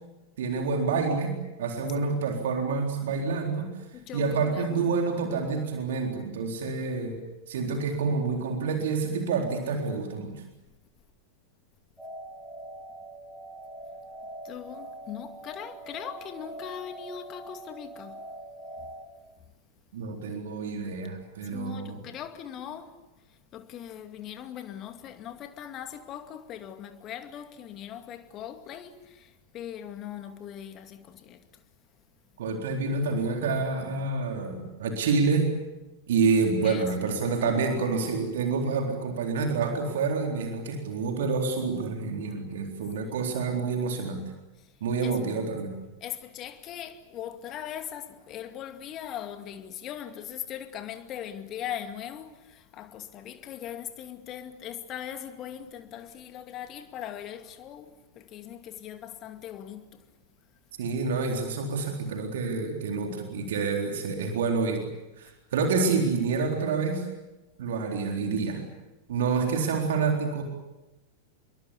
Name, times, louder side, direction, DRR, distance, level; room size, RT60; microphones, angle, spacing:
voice 1, 0.4-3.7 4.1-7.2 7.5-10.3 19.9-22.0 32.4-35.5 36.1-44.2 44.8-45.7 60.8-64.9 65.2-67.1 67.6-68.6 69.1-70.4, right 4 dB, 60° right, 3.9 m, -28 dB
voice 2, 3.9-4.4 4.8-4.9 14.4-18.2 21.5-22.9 23.5-31.4 36.6-37.3 43.0-43.1 45.0-45.2 46.0-60.0, left 10 dB, 35° left, 2.4 m, -40 dB
sound 1, 12.0-19.1, right 2 dB, ahead, 5.4 m, -43 dB
28.5 x 22.5 x 8.3 m
figure-of-eight pair, 90°, 0 cm